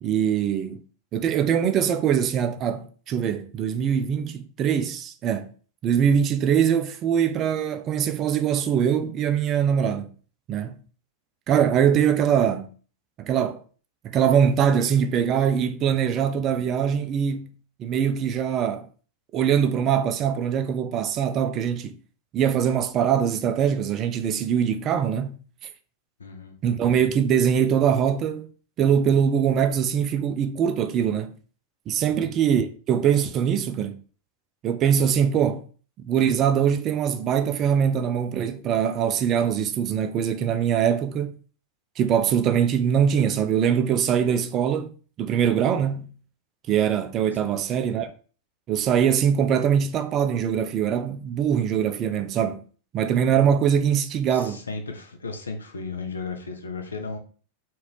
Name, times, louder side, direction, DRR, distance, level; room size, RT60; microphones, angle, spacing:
voice 1, 0.0-0.8 1.1-5.5 5.8-10.1 10.5-10.8 11.5-12.7 13.2-13.6 14.0-17.5 17.8-18.9 19.3-22.0 22.3-25.4 26.6-28.5 28.8-31.3 31.9-34.0 34.6-35.6 36.0-41.4 42.0-44.9 45.2-46.1 46.7-48.1 48.7-52.6 52.9-54.6, right 8 dB, 35° right, 0.3 m, -22 dB
voice 2, 26.2-26.6 32.1-32.3 47.4-47.6 54.3-57.2, left 4 dB, 75° left, 0.5 m, -35 dB
2.9 x 2.5 x 3.0 m
figure-of-eight pair, 90°, 0 cm